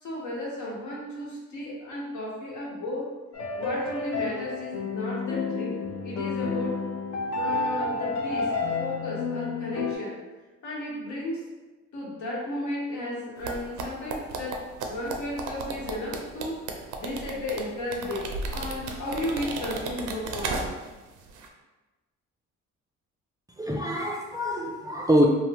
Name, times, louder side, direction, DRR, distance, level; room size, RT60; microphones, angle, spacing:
voice 1, 0.0-3.1 3.5-6.8 7.4-8.5 8.8-10.2 10.6-11.4 11.9-20.7, left 1 dB, 75° left, -4 dB, 1.1 m, -34 dB
sound 1, 3.3-10.0, left 4 dB, 60° left, 0.6 m, -30 dB
sound 2, 13.4-21.0 21.3-21.5, right 3 dB, 80° right, 0.5 m, -34 dB
voice 2, 23.6-25.3, equal, 10° right, -2 dB, 0.3 m, -24 dB
3.2 x 2.1 x 2.8 m, 1.2 s
cardioid pair, 90°, 30 cm